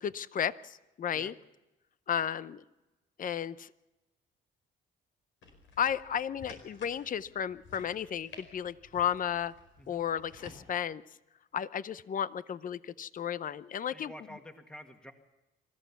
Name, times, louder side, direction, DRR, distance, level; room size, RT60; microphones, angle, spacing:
voice 1, 0.0-1.3 2.1-2.6 3.2-3.7 5.8-9.5 9.9-11.0 11.5-14.1, left 9 dB, 45° left, 16 dB, 0.7 m, -33 dB
sound 1, 5.4-10.6, left 3 dB, 75° left, 5.1 m, -54 dB
voice 2, 13.9-15.1, equal, 5° left, 5 dB, 1.8 m, -49 dB
26.5 x 14.5 x 7.1 m, 1.0 s
cardioid pair, 90°, 20 cm